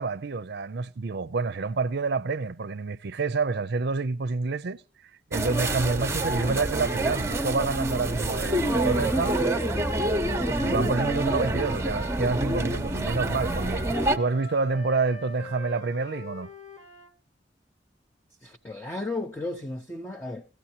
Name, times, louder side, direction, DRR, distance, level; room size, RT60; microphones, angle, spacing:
voice 1, 0.0-4.8 5.3-9.4 10.6-16.5, right 4 dB, 60° right, 0.5 m, -28 dB
sound 1, 5.3-14.2, right 1 dB, 15° right, 0.8 m, -27 dB
Wind instrument woodwind instrument, 8.0-12.2 13.2-17.1, left 1 dB, 40° left, 1.4 m, -42 dB
voice 2, 18.4-20.5, left 2 dB, 15° left, 0.7 m, -34 dB
18.0 x 15.0 x 2.8 m
head